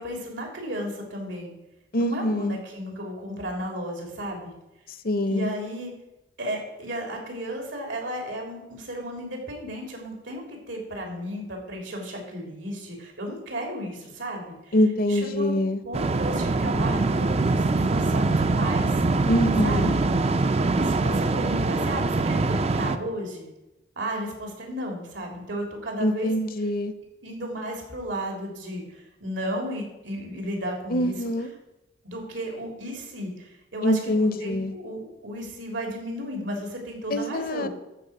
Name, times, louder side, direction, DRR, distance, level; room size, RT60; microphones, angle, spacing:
voice 1, 0.0-1.5 2.0-4.5 5.3-5.9 6.4-14.8 15.1-19.0 19.6-19.9 20.7-23.5 24.0-26.3 27.2-31.1 32.0-37.7, equal, 85° right, 1 dB, 3.2 m, -34 dB
voice 2, 1.9-2.6 5.0-5.5 14.7-15.8 19.3-19.9 26.0-26.9 30.9-31.5 33.8-34.7 37.1-37.7, left 1 dB, 50° left, 12 dB, 0.7 m, -24 dB
sound 1, 15.9-23.0, right 3 dB, 35° right, 0.5 m, -23 dB
12.5 x 4.7 x 7.8 m, 0.96 s
head